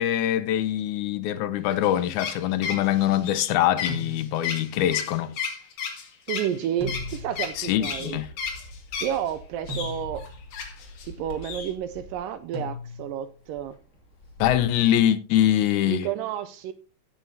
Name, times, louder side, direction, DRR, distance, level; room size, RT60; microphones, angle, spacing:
voice 1, 0.0-5.3 7.6-8.3 14.4-16.1, left 12 dB, 80° left, 1.8 m, -23 dB
sound 1, 1.7-9.3 9.7-11.1 11.4-11.7, left 6 dB, 60° left, 3.5 m, -33 dB
sound 2, 3.9-4.7 6.8-7.6 9.7-10.4 12.5-13.3, left 1 dB, 35° right, 2.2 m, -37 dB
voice 2, 6.3-8.2 9.0-10.2 11.0-13.8 15.9-16.7, right 10 dB, 80° right, 2.0 m, -30 dB
Bird, 6.8-14.8, left 1 dB, 35° left, 3.0 m, -45 dB
17.0 x 7.3 x 2.7 m
omnidirectional pair, 4.2 m